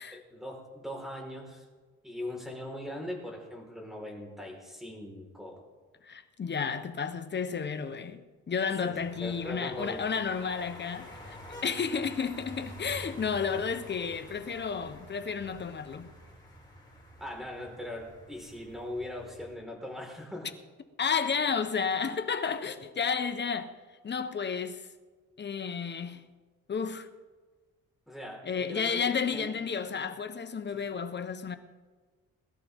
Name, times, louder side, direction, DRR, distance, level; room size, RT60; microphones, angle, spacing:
voice 1, 0.1-1.6 2.0-5.6 8.8-10.0 17.2-20.5 28.1-29.5 30.7-31.0, left 1 dB, ahead, 4.6 m, -40 dB
voice 2, 6.0-11.4 11.6-16.1 21.0-23.7 24.0-24.9 25.4-26.2 26.7-27.1 28.4-31.6, left 6 dB, 35° left, 1.1 m, -32 dB
sound 1, 8.8-19.5, left 1 dB, 15° left, 5.9 m, -49 dB
21.5 x 13.0 x 3.7 m
cardioid pair, 90°, 30 cm